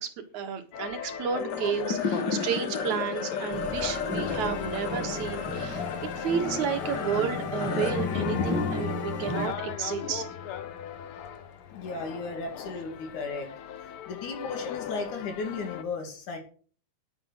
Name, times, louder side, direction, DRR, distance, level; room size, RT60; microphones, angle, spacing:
voice 1, 0.0-5.9 6.2-10.3, right 7 dB, 80° right, 6 dB, 2.9 m, -32 dB
sound 1, 0.7-15.8, left 9 dB, 65° left, 1.5 m, -38 dB
sound 2, 1.4-11.9, left 5 dB, 45° left, 1.7 m, -34 dB
sound 3, 3.5-9.5, equal, 10° right, 0.7 m, -36 dB
voice 2, 11.7-13.5 14.1-16.4, left 4 dB, 90° left, 4 dB, 4.0 m, -35 dB
10.0 x 9.0 x 6.5 m, 0.43 s
omnidirectional pair, 3.4 m